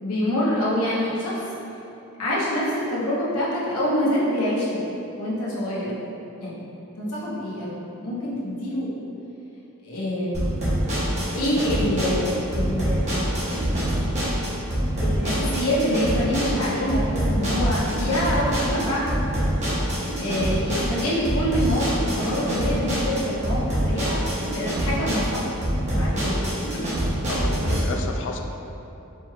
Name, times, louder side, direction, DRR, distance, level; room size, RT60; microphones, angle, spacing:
voice 1, 0.0-1.4 2.2-4.8 5.2-5.9 6.4-6.5 7.0-7.8 8.0-8.9 9.8-10.5 11.3-13.1 14.0-14.2 15.0-19.3 20.1-25.4 25.9-26.4, left 1 dB, 85° left, -7 dB, 0.9 m, -26 dB
sound 1, 10.3-27.8, equal, 30° right, 0.9 m, -25 dB
voice 2, 27.3-28.4, left 3 dB, 55° left, 4 dB, 0.3 m, -32 dB
4.4 x 3.1 x 2.3 m, 3.0 s
head